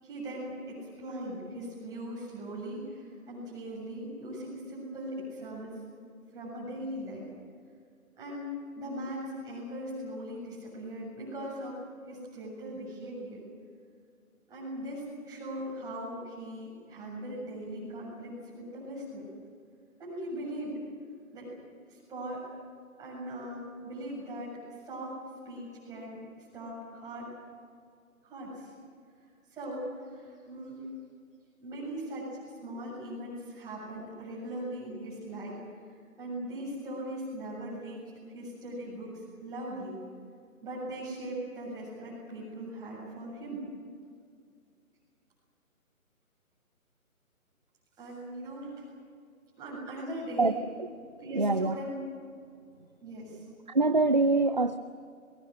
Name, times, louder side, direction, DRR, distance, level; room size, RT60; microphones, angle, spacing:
voice 1, 0.0-5.8 6.3-7.3 8.2-11.8 12.1-13.4 14.5-19.3 20.0-20.8 21.3-21.5 21.9-22.4 23.0-24.5 24.9-25.2 25.5-26.2 26.5-27.3 28.2-28.7 29.5-30.9 31.6-35.6 36.2-40.0 40.6-43.7 48.0-48.9 49.6-50.6 51.2-52.0 53.0-53.4, right 1 dB, 10° right, -5 dB, 7.2 m, -39 dB
voice 2, 51.3-51.8 53.7-54.8, right 3 dB, 35° right, 10 dB, 0.6 m, -24 dB
28.0 x 22.0 x 6.4 m, 2.2 s
figure-of-eight pair, 155°, 43 cm